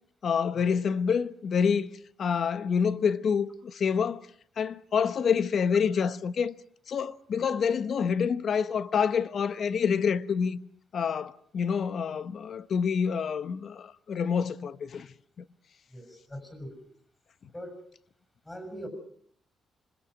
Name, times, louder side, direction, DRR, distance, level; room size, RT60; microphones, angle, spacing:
voice 1, 0.2-1.9 2.2-4.2 4.6-6.5 6.9-10.6 10.9-15.1, left 6 dB, 50° left, 0.9 m, -27 dB
voice 2, 15.9-16.9 17.5-17.8 18.4-18.9, equal, 15° left, 6.5 m, -42 dB
26.5 x 21.0 x 6.4 m
cardioid pair, 125°, 0 cm